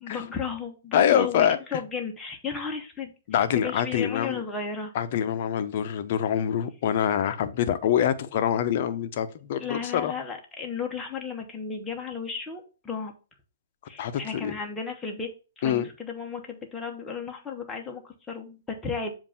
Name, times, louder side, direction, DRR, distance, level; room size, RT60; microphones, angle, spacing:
voice 1, 0.0-3.1 3.5-4.9 7.3-7.4 9.6-13.1 13.9-15.3 15.6-19.2, left 5 dB, 10° left, 1.1 m, -34 dB
voice 2, 0.9-1.8 3.3-4.4 4.9-10.1 14.0-14.1 14.4-14.5 15.6-15.9, left 9 dB, 50° left, 0.7 m, -25 dB
7.2 x 2.6 x 5.6 m
hypercardioid pair, 135°, 0 cm